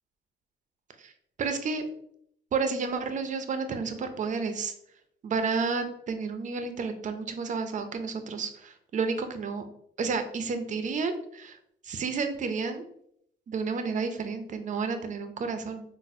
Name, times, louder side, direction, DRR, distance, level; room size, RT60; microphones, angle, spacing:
voice 1, 1.4-1.9 2.5-4.7 5.2-9.6 10.0-11.6 11.8-12.8 13.5-15.8, right 4 dB, 40° right, 8 dB, 0.4 m, -31 dB
4.0 x 2.0 x 2.5 m, 0.70 s
cardioid pair, 90°, 20 cm